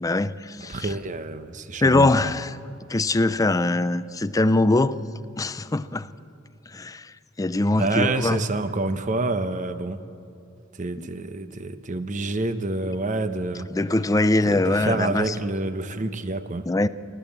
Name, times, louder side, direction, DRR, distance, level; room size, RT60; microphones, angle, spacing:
voice 1, 0.0-0.9 1.8-2.6 2.9-5.0 5.4-6.1 6.7-7.1 7.4-8.4 11.0-11.1 13.7-15.3 16.7-16.9, left 2 dB, 15° left, 14 dB, 0.4 m, -22 dB
voice 2, 0.6-2.4 7.8-10.0 10.8-13.7 14.5-16.7, right 2 dB, 40° right, 11 dB, 0.9 m, -28 dB
29.5 x 12.5 x 7.4 m, 2.8 s
head